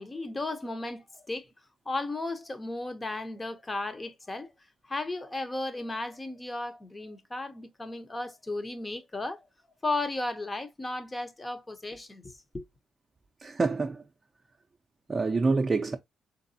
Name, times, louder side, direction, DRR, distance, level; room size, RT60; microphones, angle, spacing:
voice 1, 0.0-1.5 1.9-4.5 4.8-9.5 9.8-12.6, left 2 dB, 20° left, 0.8 m, -35 dB
voice 2, 13.4-14.0 15.1-16.0, right 3 dB, 25° right, 0.5 m, -26 dB
3.9 x 3.4 x 2.7 m
cardioid pair, 90°, 0 cm